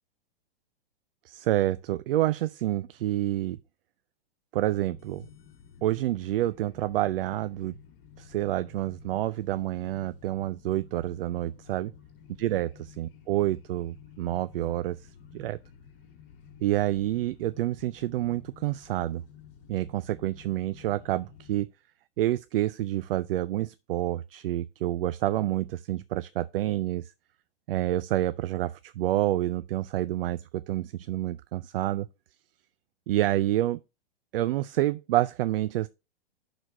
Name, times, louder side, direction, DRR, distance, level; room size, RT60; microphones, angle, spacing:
voice 1, 1.2-3.6 4.5-5.3 5.8-7.7 8.2-11.9 12.4-15.6 16.6-19.2 19.7-21.7 22.2-27.1 27.7-32.1 33.1-33.8 34.3-35.9, right 14 dB, 65° right, 0.5 m, -28 dB
sound 1, 4.7-21.6, left 8 dB, 60° left, 1.6 m, -52 dB
6.4 x 4.1 x 6.0 m
hypercardioid pair, 115°, 30 cm